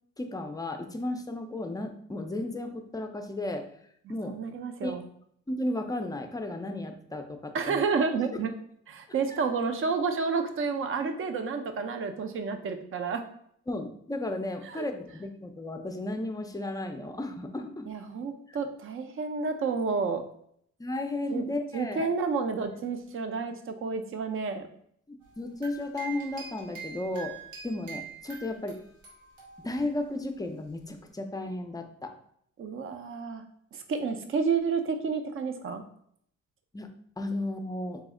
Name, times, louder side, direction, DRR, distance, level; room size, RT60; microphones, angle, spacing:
voice 1, 0.2-3.6 4.1-4.3 4.8-4.9 5.5-7.8 9.3-9.4 13.7-17.9 18.5-18.6 20.8-22.1 25.1-27.4 27.6-28.8 29.6-32.1 36.7-36.9 37.2-38.0, left 1 dB, 10° left, 5 dB, 0.4 m, -34 dB
voice 2, 4.3-5.0 7.5-8.5 8.9-13.2 14.7-14.9 17.9-20.2 21.3-21.5 21.7-24.7 32.6-33.4 33.7-35.8, right 5 dB, 45° right, 7 dB, 0.5 m, -30 dB
sound 1, 25.2-30.1, right 6 dB, 90° right, 1.1 m, -45 dB
4.1 x 2.0 x 3.6 m, 0.67 s
cardioid pair, 90°, 30 cm